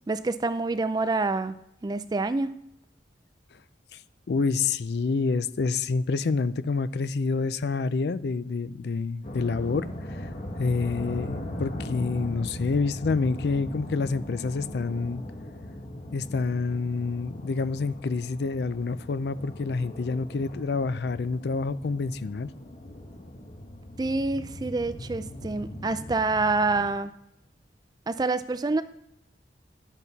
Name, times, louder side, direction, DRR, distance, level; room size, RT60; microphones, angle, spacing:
voice 1, 0.1-1.6 1.8-2.5 24.0-27.1 28.1-28.8, right 3 dB, 20° right, 0.3 m, -27 dB
voice 2, 4.3-10.2 10.6-15.2 16.1-22.5, left 4 dB, 60° left, 0.4 m, -28 dB
sound 1, 9.2-26.9, left 1 dB, 40° left, 1.1 m, -39 dB
11.0 x 7.2 x 4.0 m
head